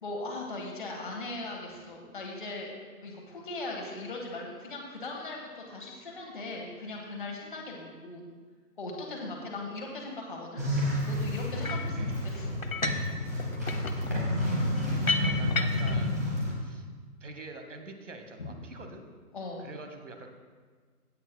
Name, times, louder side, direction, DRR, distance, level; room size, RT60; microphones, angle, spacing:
voice 1, 0.0-2.7 3.0-8.2 8.8-10.6 11.0-12.6 18.4-18.5 19.3-19.7, left 2 dB, 30° left, -1 dB, 1.5 m, -39 dB
sound 1, 10.6-16.5, left 1 dB, 10° right, 1.0 m, -30 dB
sound 2, 11.6-11.9 12.6-13.1 13.4-16.0, left 3 dB, 60° left, 1.0 m, -33 dB
voice 2, 15.4-16.2 16.6-16.9 17.2-19.1 19.6-20.4, right 3 dB, 50° right, 5 dB, 1.3 m, -46 dB
16.5 x 8.6 x 2.2 m, 1.5 s
hypercardioid pair, 180°, 46 cm